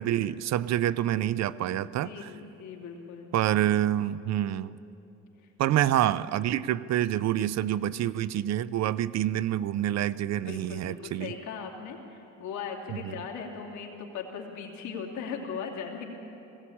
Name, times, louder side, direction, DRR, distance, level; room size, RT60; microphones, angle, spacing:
voice 1, 0.0-2.3 3.3-4.8 5.6-11.3 13.0-13.2, right 12 dB, 65° right, 17 dB, 0.6 m, -27 dB
voice 2, 1.8-3.3 10.4-16.0, left 6 dB, 80° left, 1 dB, 2.9 m, -39 dB
19.5 x 16.0 x 8.7 m, 2.9 s
cardioid pair, 125°, 29 cm